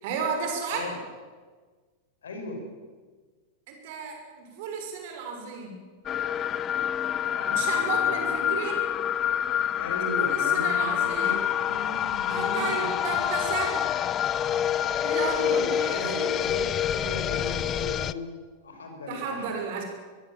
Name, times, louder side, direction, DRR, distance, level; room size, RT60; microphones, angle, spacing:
voice 1, 0.0-0.9 3.7-5.8 7.5-8.9 10.2-11.4 12.3-14.1 15.0-16.3 19.1-19.8, right 5 dB, 50° right, 3 dB, 6.3 m, -33 dB
voice 2, 2.2-2.7 7.2-8.3 9.8-11.4 11.7-12.7 13.1-13.2 15.4-18.3 18.6-19.5, left 1 dB, 70° left, 4 dB, 6.2 m, -37 dB
sound 1, 6.1-18.1, left 10 dB, 30° left, 0.7 m, -27 dB
23.0 x 22.5 x 7.5 m, 1.4 s
figure-of-eight pair, 90°, 0 cm